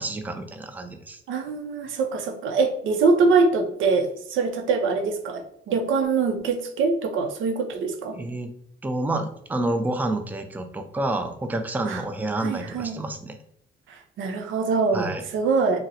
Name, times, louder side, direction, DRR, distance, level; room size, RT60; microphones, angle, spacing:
voice 1, 0.0-1.2 8.1-8.5 8.8-13.4 14.9-15.2, right 2 dB, 10° right, 7 dB, 0.4 m, -29 dB
voice 2, 1.3-8.2 11.9-12.0 12.4-13.0 14.2-15.8, right 4 dB, 80° right, 6 dB, 0.5 m, -23 dB
4.0 x 2.0 x 2.6 m, 0.69 s
cardioid pair, 90°, 20 cm